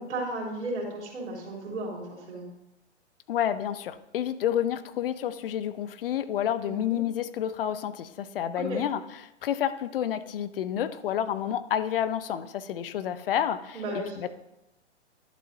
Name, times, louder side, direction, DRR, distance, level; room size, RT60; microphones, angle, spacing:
voice 1, 0.0-2.4 6.6-7.0 8.7-8.8 13.7-14.2, right 1 dB, 75° right, -3 dB, 3.3 m, -34 dB
voice 2, 3.3-9.0 9.4-13.8 14.2-14.3, left 10 dB, 50° left, 13 dB, 0.6 m, -29 dB
11.5 x 7.4 x 2.6 m, 0.88 s
hypercardioid pair, 130°, 35 cm